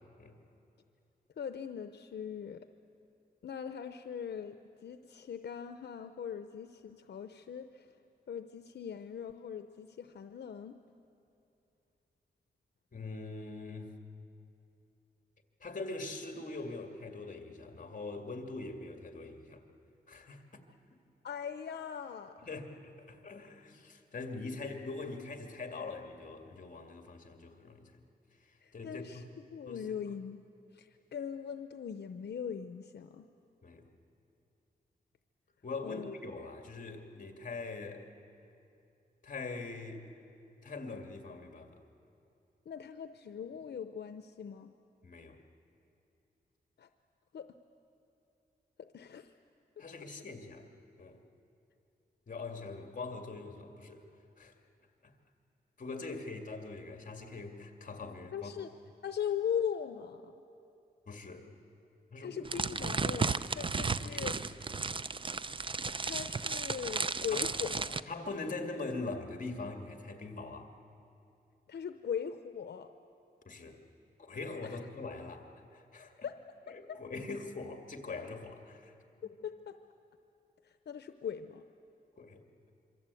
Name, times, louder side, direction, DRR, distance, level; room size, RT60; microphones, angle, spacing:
voice 1, 1.4-2.7 3.4-8.0 8.3-10.8 21.2-22.4 28.6-30.4 30.7-33.3 35.8-36.1 42.7-44.7 46.8-46.9 47.3-47.5 48.8-49.3 49.8-49.9 58.3-58.7 59.0-60.3 62.2-64.5 66.0-68.0 71.7-72.9 74.6-74.8 76.2-76.4 76.7-77.0 79.4-79.8 80.6-81.6, left 8 dB, 85° left, 9 dB, 0.7 m, -40 dB
voice 2, 12.9-13.9 15.6-19.6 20.1-20.4 22.5-22.7 23.1-28.0 28.4-29.2 29.7-29.8 33.6-33.8 35.6-38.0 39.2-40.0 40.6-41.8 45.0-45.4 49.8-50.7 51.0-51.2 52.3-54.0 54.4-54.5 55.8-58.5 61.1-61.5 62.1-62.4 64.0-64.3 67.3-67.4 68.1-70.7 73.5-73.8 74.2-76.1 76.7-78.9 82.2-82.4, left 3 dB, 50° left, 5 dB, 2.3 m, -42 dB
sound 1, 62.4-68.0, right 4 dB, 30° right, 0.6 m, -34 dB
26.0 x 24.0 x 8.4 m, 2.7 s
wide cardioid pair, 125°, 17 cm